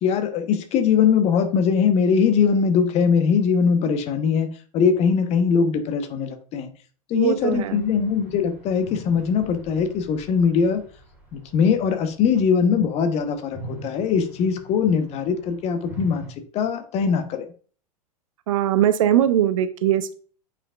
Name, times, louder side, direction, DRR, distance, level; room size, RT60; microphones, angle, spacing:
voice 1, 0.0-4.5 4.7-6.7 7.1-10.8 11.3-16.3 16.5-17.5, left 6 dB, 35° left, 8 dB, 1.0 m, -21 dB
voice 2, 7.1-7.9 18.5-20.1, right 11 dB, 55° right, 12 dB, 0.6 m, -21 dB
sound 1, 7.4-13.0 13.4-16.3, right 1 dB, 5° right, 2.4 m, -43 dB
8.6 x 5.1 x 2.4 m, 0.42 s
figure-of-eight pair, 90°, 20 cm